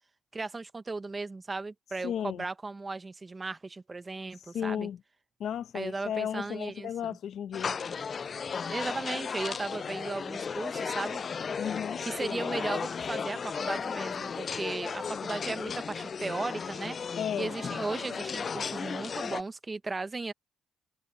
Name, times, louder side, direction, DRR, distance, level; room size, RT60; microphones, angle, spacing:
voice 1, 0.3-4.9 5.7-7.2 8.7-11.2 12.0-17.0 17.3-20.3, right 3 dB, 25° right, 1.1 m, -36 dB
voice 2, 2.0-2.5 4.4-5.0 5.4-7.8 11.6-12.0 17.2-17.5, left 9 dB, 70° left, 1.2 m, -34 dB
sound 1, 7.5-19.4, left 6 dB, 45° left, 0.3 m, -35 dB
cardioid pair, 90°, 0 cm